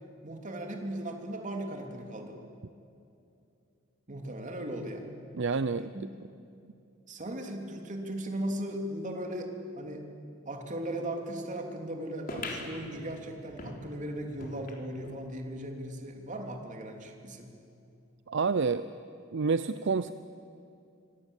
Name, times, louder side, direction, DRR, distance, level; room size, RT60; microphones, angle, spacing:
voice 1, 0.2-2.4 4.1-5.1 5.9-6.1 7.1-10.1 10.4-17.5, right 1 dB, 40° right, 3 dB, 3.2 m, -37 dB
voice 2, 5.3-5.9 18.3-18.9 19.3-20.1, right 4 dB, 60° right, 13 dB, 0.6 m, -28 dB
sound 1, 12.3-15.2 15.7-15.8 16.0-16.1 16.9-17.0, left 2 dB, 45° left, 3.8 m, -42 dB
27.0 x 25.0 x 8.4 m, 2.6 s
head